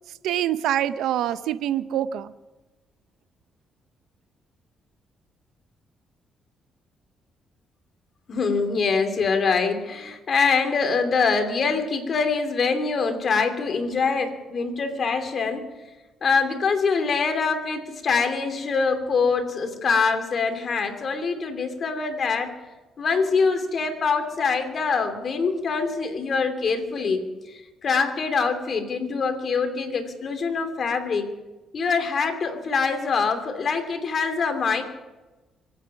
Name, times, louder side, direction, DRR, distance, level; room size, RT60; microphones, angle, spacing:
voice 1, 0.2-2.3, right 11 dB, 85° right, 14 dB, 0.6 m, -25 dB
voice 2, 8.3-15.7 16.2-22.5 23.0-27.3 27.8-31.3 31.7-34.8, left 5 dB, 50° left, 6 dB, 2.8 m, -24 dB
24.5 x 9.1 x 5.9 m, 1.1 s
cardioid pair, 90°, 0 cm